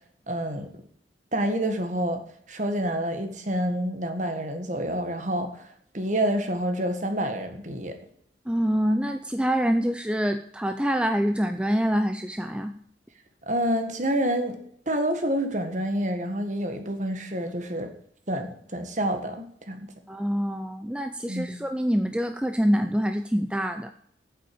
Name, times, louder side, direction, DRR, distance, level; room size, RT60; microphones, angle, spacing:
voice 1, 0.3-0.7 1.3-2.2 2.5-5.7 5.9-7.9 13.5-14.6 14.8-17.9 18.3-19.9 21.3-21.5, right 1 dB, 40° right, 6 dB, 1.7 m, -28 dB
voice 2, 8.5-12.7 20.1-23.9, equal, 5° right, 7 dB, 0.5 m, -25 dB
9.2 x 7.7 x 8.6 m, 0.64 s
head